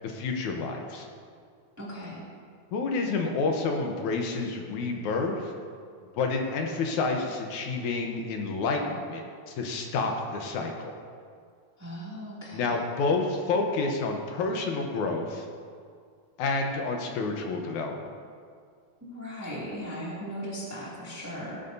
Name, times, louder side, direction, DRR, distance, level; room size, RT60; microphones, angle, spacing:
voice 1, 0.0-1.1 2.7-5.5 6.1-10.9 12.5-15.5 16.4-18.0, left 3 dB, 70° left, 2 dB, 2.1 m, -29 dB
voice 2, 1.8-2.2 11.8-12.7 19.0-21.6, equal, 5° right, -6 dB, 1.4 m, -38 dB
17.5 x 9.1 x 2.7 m, 2.1 s
omnidirectional pair, 4.0 m